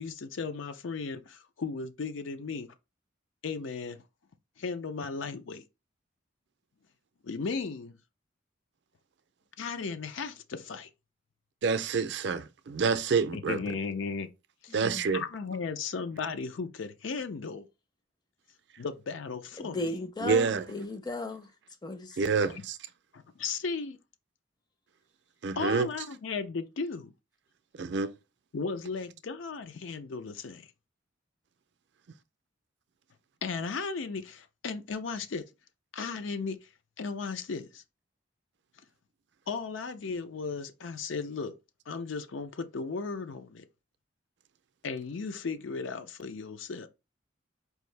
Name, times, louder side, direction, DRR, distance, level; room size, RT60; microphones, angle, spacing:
voice 1, 0.0-2.7 3.4-4.0 4.6-5.6 7.2-8.0 9.6-10.9 13.3-14.3 14.6-14.8 15.1-17.7 18.8-19.9 22.5-22.6 23.1-24.0 25.6-27.1 28.5-30.7 33.4-35.4 35.9-36.7 37.0-37.8 39.5-41.5 41.9-43.6 44.8-46.9, left 4 dB, 80° left, 0.5 m, -35 dB
voice 2, 11.6-13.6 14.7-15.2 20.2-20.7 22.2-22.8 25.4-25.9 27.8-28.1, right 5 dB, 60° right, 0.4 m, -27 dB
voice 3, 14.7-15.0 19.6-21.5 21.8-22.2, left 2 dB, 20° left, 0.5 m, -36 dB
4.6 x 2.6 x 3.2 m
head